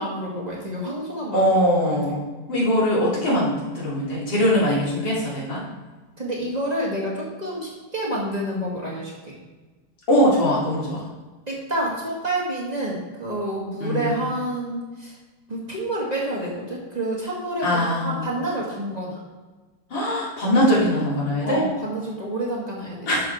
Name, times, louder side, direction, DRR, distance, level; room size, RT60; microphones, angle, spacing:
voice 1, 0.0-2.1 6.2-9.3 11.5-15.1 15.5-19.2 21.4-23.1, right 1 dB, 20° right, -5 dB, 1.9 m, -29 dB
voice 2, 1.3-2.2 2.5-5.6 10.1-11.1 13.8-14.2 17.6-18.2 19.9-21.7 23.1-23.2, equal, 90° left, -6 dB, 3.4 m, -21 dB
10.5 x 7.1 x 3.5 m, 1.3 s
omnidirectional pair, 2.0 m